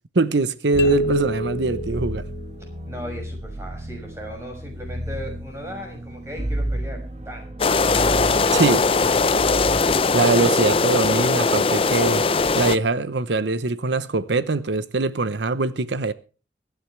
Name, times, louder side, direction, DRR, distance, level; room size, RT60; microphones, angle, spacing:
voice 1, 0.1-2.2 8.5-8.9 10.1-12.2 12.5-16.1, right 3 dB, 70° right, 0.8 m, -22 dB
sound 1, 0.7-9.8, right 1 dB, 35° right, 1.3 m, -32 dB
sound 2, 0.8-2.7, equal, 65° left, 0.9 m, -25 dB
voice 2, 2.6-8.2, equal, 15° right, 6.2 m, -38 dB
sound 3, 7.6-12.8, left 4 dB, 30° left, 0.5 m, -20 dB
23.0 x 10.0 x 3.3 m
head